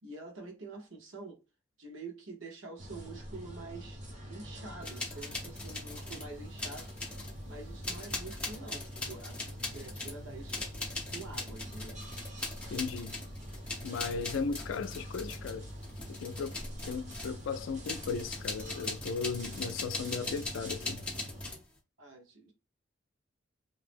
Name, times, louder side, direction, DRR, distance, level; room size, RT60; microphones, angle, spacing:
voice 1, 0.0-1.4 1.8-9.4 9.7-12.1 22.0-22.5, right 3 dB, 85° right, 1.0 m, -47 dB
sound 1, 2.8-21.5, equal, 40° right, 0.7 m, -45 dB
sound 2, 4.8-6.3 6.6-7.4 7.8-17.4 17.9-21.7, left 2 dB, 5° left, 0.7 m, -41 dB
voice 2, 12.7-13.2 13.8-15.7 16.2-16.6 16.8-21.0, left 5 dB, 80° left, 0.3 m, -36 dB
2.7 x 2.0 x 3.3 m
head